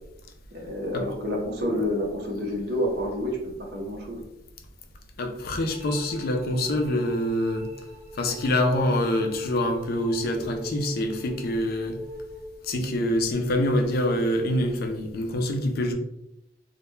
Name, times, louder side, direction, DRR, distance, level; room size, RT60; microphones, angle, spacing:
voice 1, 0.5-4.2, left 1 dB, 55° right, 0 dB, 0.6 m, -29 dB
voice 2, 5.2-7.7 8.1-12.0 12.6-15.9, left 1 dB, 50° left, 4 dB, 0.4 m, -25 dB
sound 1, 5.7-12.7, equal, 15° right, 0.9 m, -43 dB
2.1 x 2.1 x 3.0 m, 0.84 s
head